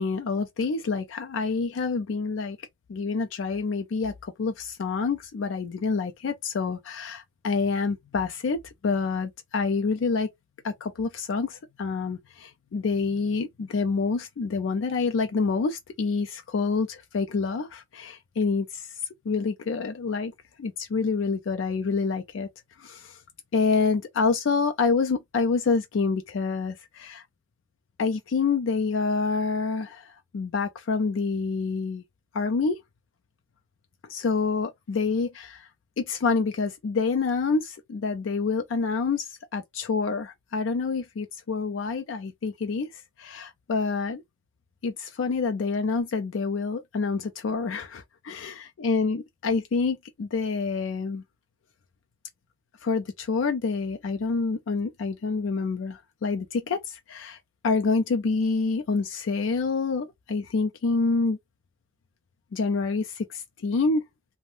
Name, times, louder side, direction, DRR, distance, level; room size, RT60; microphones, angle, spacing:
voice 1, 0.0-2.6 2.9-10.3 10.6-18.9 19.3-20.3 20.6-22.5 22.8-23.2 23.5-27.2 28.0-32.0 32.3-32.8 34.0-35.7 36.0-44.2 44.8-51.2 52.8-57.4 57.6-61.4 62.5-64.0, left 4 dB, 85° left, 0.4 m, -27 dB
2.5 x 2.1 x 3.2 m
head